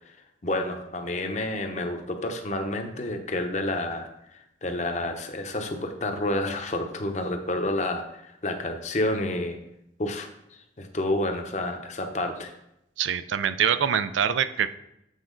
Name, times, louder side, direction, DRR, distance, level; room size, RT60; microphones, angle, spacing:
voice 1, 0.4-4.1 4.3-9.6 10.0-12.5, left 1 dB, 40° left, 5 dB, 0.7 m, -29 dB
voice 2, 13.0-14.8, right 8 dB, 85° right, 13 dB, 0.4 m, -24 dB
8.2 x 4.4 x 3.8 m, 0.82 s
head